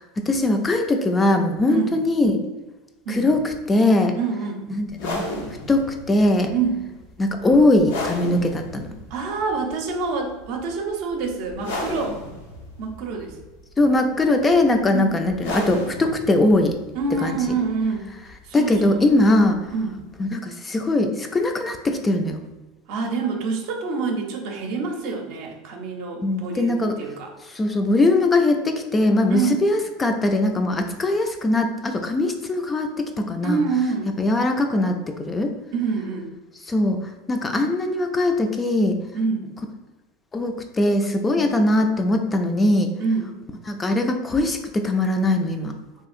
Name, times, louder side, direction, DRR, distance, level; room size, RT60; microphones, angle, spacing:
voice 1, 0.0-2.4 3.1-3.4 3.7-4.1 4.8-5.2 5.7-6.5 7.2-8.9 13.8-16.7 17.2-17.4 18.5-19.6 20.2-22.4 26.2-26.9 27.5-33.6 34.2-35.5 36.7-37.0 37.3-39.0 40.3-42.9 43.7-45.7, left 2 dB, 20° left, 5 dB, 0.3 m, -21 dB
voice 2, 4.1-4.6 6.5-6.9 9.1-12.2 12.8-13.4 14.9-15.2 16.9-18.1 18.4-19.2 19.7-20.0 22.9-27.3 29.3-29.7 33.4-34.2 35.7-36.3 39.1-39.5 41.2-41.5 43.0-43.3, right 4 dB, 65° right, 2 dB, 0.6 m, -26 dB
sound 1, 4.9-20.2, left 1 dB, 85° left, 0.6 m, -35 dB
2.9 x 2.7 x 2.4 m, 1.1 s
supercardioid pair, 105°, 0 cm